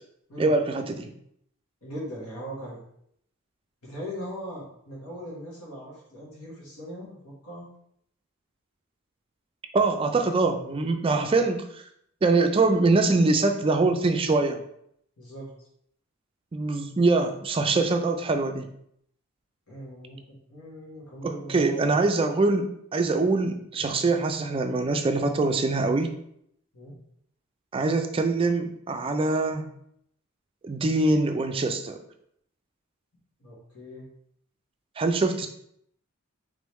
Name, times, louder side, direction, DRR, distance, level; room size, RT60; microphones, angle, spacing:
voice 1, 0.4-1.1 9.7-11.8 12.2-14.6 16.5-18.7 21.2-26.1 27.7-29.7 30.6-32.0 35.0-35.5, right 3 dB, 25° right, 6 dB, 0.3 m, -24 dB
voice 2, 1.8-2.8 3.8-7.7 11.1-11.3 15.2-15.7 19.7-22.0 23.2-23.5 23.8-23.9 26.7-27.0 33.4-34.0, equal, 85° left, -5 dB, 1.4 m, -39 dB
3.7 x 3.4 x 3.1 m, 0.72 s
head